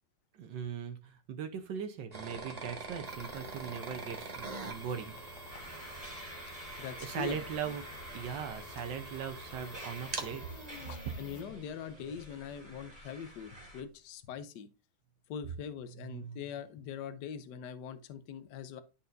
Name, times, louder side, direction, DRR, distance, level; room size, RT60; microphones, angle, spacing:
voice 1, 0.3-5.4 5.7-5.9 7.0-7.8 8.1-10.5 11.0-11.1 16.0-16.4, right 7 dB, 75° right, 1.5 m, -40 dB
sound 1, 2.1-12.9, right 3 dB, 30° right, 0.8 m, -45 dB
sound 2, 3.1-11.4, left 7 dB, 90° left, 1.6 m, -54 dB
sound 3, 5.5-13.8, equal, 15° right, 2.4 m, -50 dB
voice 2, 6.8-7.4 7.7-7.8 11.2-14.7 15.3-18.8, left 8 dB, 70° left, 1.3 m, -42 dB
12.0 x 4.2 x 2.6 m
omnidirectional pair, 2.1 m